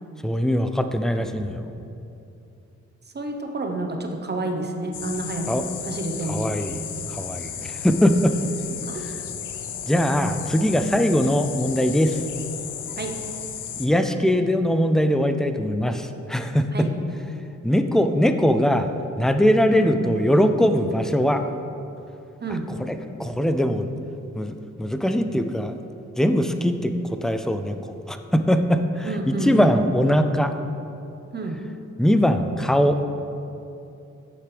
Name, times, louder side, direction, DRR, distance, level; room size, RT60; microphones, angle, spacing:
voice 1, 0.2-1.7 5.5-5.6 6.3-6.8 7.1-8.3 9.9-12.2 13.8-16.9 17.6-21.4 22.9-23.9 24.3-25.8 26.2-30.5 32.0-33.0, equal, ahead, 8 dB, 0.4 m, -21 dB
voice 2, 3.1-6.5 8.7-9.1 13.0-13.2 16.7-16.9 19.7-20.1 22.4-22.7 29.0-29.7 31.3-31.6, right 2 dB, 35° right, 4 dB, 0.9 m, -29 dB
sound 1, 4.9-13.9, left 8 dB, 90° left, 0.6 m, -34 dB
9.3 x 6.6 x 3.3 m, 2.8 s
cardioid pair, 75°, 30 cm